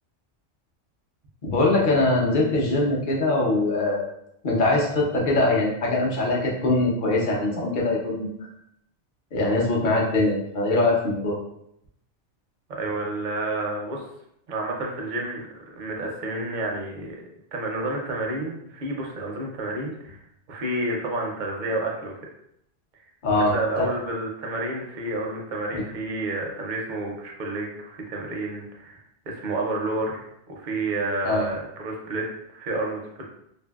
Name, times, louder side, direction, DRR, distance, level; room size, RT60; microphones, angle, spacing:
voice 1, 1.4-4.1 4.4-8.3 9.3-11.4 23.2-23.9 25.7-25.8 31.2-31.5, left 2 dB, 50° left, -3 dB, 0.7 m, -22 dB
voice 2, 12.7-14.0 14.5-15.4 15.7-20.2 20.5-22.1 23.4-33.2, right 2 dB, 55° right, 0 dB, 0.6 m, -30 dB
2.6 x 2.6 x 2.3 m, 0.75 s
omnidirectional pair, 1.2 m